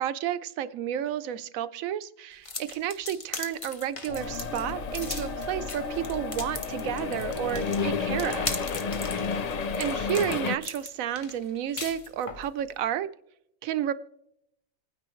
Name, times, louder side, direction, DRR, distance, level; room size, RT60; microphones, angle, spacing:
voice 1, 0.0-8.5 9.1-9.3 9.8-13.1 13.6-13.9, right 10 dB, 80° right, 1.0 m, -31 dB
sound 1, 2.4-12.5, left 3 dB, 30° left, 0.8 m, -38 dB
sound 2, 4.1-10.4, left 3 dB, 60° left, 1.3 m, -36 dB
sound 3, 4.2-10.6, left 5 dB, 85° left, 0.3 m, -33 dB
27.0 x 9.6 x 3.1 m
omnidirectional pair, 1.4 m